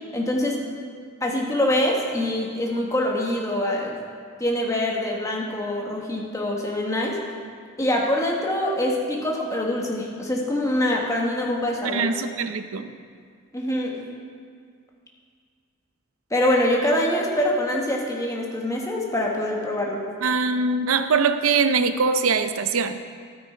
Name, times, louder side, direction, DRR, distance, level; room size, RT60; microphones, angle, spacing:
voice 1, 0.1-0.6 1.2-3.9 4.4-7.2 7.8-12.0 13.5-14.0 16.3-20.0, left 1 dB, 15° left, -1 dB, 1.5 m, -24 dB
voice 2, 11.8-12.9 20.2-23.0, right 4 dB, 85° right, 10 dB, 0.6 m, -22 dB
12.5 x 9.6 x 4.4 m, 2.1 s
head